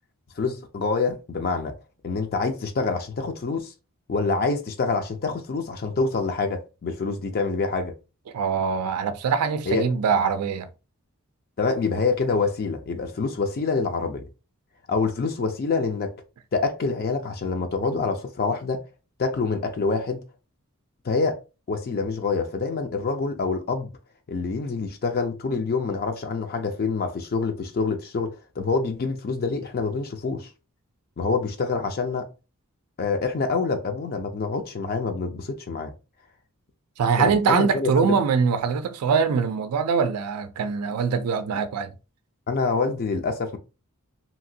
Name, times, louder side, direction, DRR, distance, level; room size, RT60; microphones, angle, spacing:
voice 1, 0.4-1.7 2.0-3.7 4.1-7.9 9.7-9.9 11.6-14.2 14.9-16.1 16.5-18.8 19.2-20.2 21.0-21.4 21.7-23.9 24.3-30.5 31.2-32.3 33.0-35.9 37.2-38.2 42.5-43.6, left 4 dB, 45° left, 0.4 m, -26 dB
voice 2, 8.3-10.7 37.0-41.9, right 6 dB, 80° right, 0.4 m, -23 dB
2.8 x 2.5 x 2.7 m
head